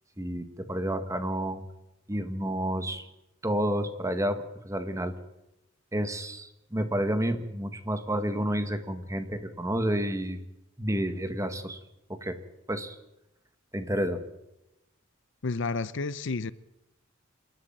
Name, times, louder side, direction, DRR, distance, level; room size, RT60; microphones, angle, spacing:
voice 1, 0.2-1.6 2.1-3.1 3.4-5.1 5.9-10.4 10.8-11.8 12.1-12.4 12.7-13.0 13.7-14.2, equal, 15° right, 1.7 m, -30 dB
voice 2, 15.4-16.5, left 3 dB, 60° left, 0.7 m, -30 dB
27.5 x 12.0 x 8.8 m
head